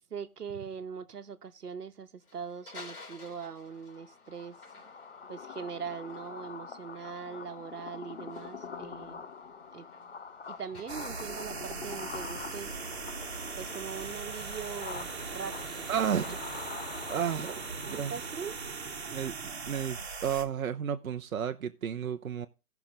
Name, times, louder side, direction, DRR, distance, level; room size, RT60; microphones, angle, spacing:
voice 1, 0.1-4.6 5.3-9.2 9.7-9.9 10.5-12.7 13.6-15.9 16.3-16.4 17.8-18.5, right 6 dB, 90° right, 1.2 m, -41 dB
sound 1, 2.2-19.2, left 3 dB, 90° left, 3.5 m, -52 dB
sound 2, 3.5-18.8, left 5 dB, 45° left, 0.6 m, -45 dB
sound 3, 10.9-20.4, right 5 dB, 45° right, 1.3 m, -40 dB
voice 2, 15.9-16.4 17.1-18.1 19.1-19.3 19.7-22.5, right 8 dB, 65° right, 0.8 m, -32 dB
16.0 x 5.9 x 3.7 m
hypercardioid pair, 170°, 45 cm